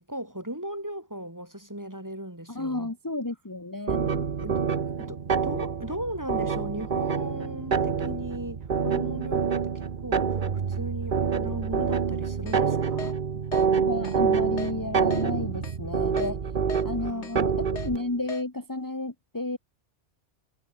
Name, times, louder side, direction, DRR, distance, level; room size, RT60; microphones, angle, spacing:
voice 1, 0.0-2.9 4.4-10.4 10.7-13.2 17.0-17.6, right 1 dB, 15° right, 2.7 m, -37 dB
voice 2, 2.5-4.3 13.7-16.4 16.8-19.6, left 2 dB, 15° left, 1.5 m, -32 dB
sound 1, 3.9-18.0, right 6 dB, 45° right, 1.1 m, -27 dB
Keyboard (musical), 12.5-12.6 13.0-13.1 13.5-13.7 14.0-14.2 14.6-14.7 15.1-15.2 15.6-15.8 16.2-16.3 16.7-16.8 17.2-17.4 17.8-17.9 18.3-18.4, left 5 dB, 70° left, 2.0 m, -39 dB
omnidirectional pair, 1.2 m